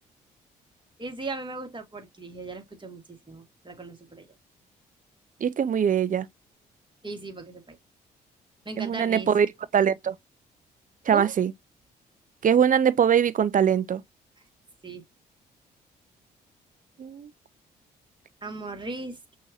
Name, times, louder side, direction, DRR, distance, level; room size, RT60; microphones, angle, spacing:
voice 1, 1.0-4.3 7.0-7.8 8.7-9.3 11.1-11.3 14.8-15.0 18.4-19.2, right 3 dB, 25° right, 2.3 m, -37 dB
voice 2, 5.4-6.3 8.8-9.5 9.7-10.1 11.1-11.5 12.4-14.0 17.0-17.3, right 8 dB, 45° right, 0.6 m, -22 dB
6.1 x 2.9 x 2.6 m
hypercardioid pair, 45°, 20 cm